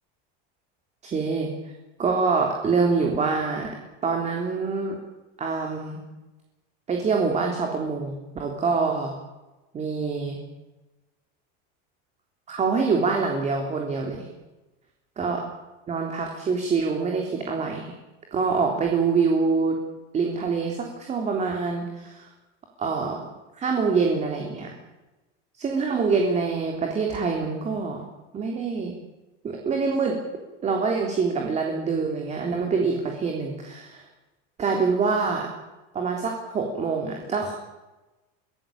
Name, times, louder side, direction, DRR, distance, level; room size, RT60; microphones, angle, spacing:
voice 1, 1.0-1.5 2.0-3.7 4.0-5.0 5.4-6.0 6.9-9.1 9.7-10.4 12.5-14.3 15.2-15.4 15.9-17.9 18.3-19.8 20.1-22.3 22.8-23.2 23.5-24.7 25.6-28.0 28.3-29.0 29.4-30.2 30.6-34.1 34.6-35.5 35.9-37.6, right 4 dB, 20° right, 2 dB, 3.5 m, -25 dB
24.0 x 17.5 x 8.8 m, 1.1 s
cardioid pair, 165°, 30 cm